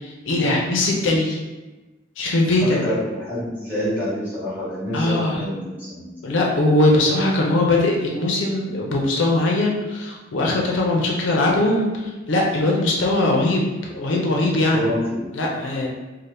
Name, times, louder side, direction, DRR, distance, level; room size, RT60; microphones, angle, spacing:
voice 1, 0.0-1.4 2.2-2.8 4.9-5.4 6.2-14.9 15.3-15.9, left 2 dB, 75° left, -1 dB, 0.5 m, -20 dB
voice 2, 2.6-6.0 14.7-15.3, equal, 10° right, -10 dB, 1.1 m, -27 dB
2.7 x 2.1 x 3.2 m, 1.2 s
head